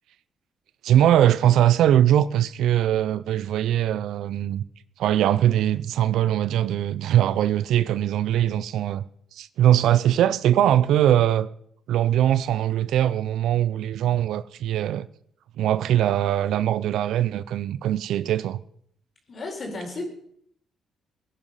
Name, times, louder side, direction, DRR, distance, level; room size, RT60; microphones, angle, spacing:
voice 1, 0.8-4.6 5.0-9.0 9.3-11.5 11.9-15.1 15.6-18.6, right 11 dB, 80° right, 0.5 m, -21 dB
voice 2, 19.3-20.1, left 2 dB, 45° left, 4.3 m, -33 dB
17.0 x 10.0 x 5.6 m
cardioid pair, 90°, 0 cm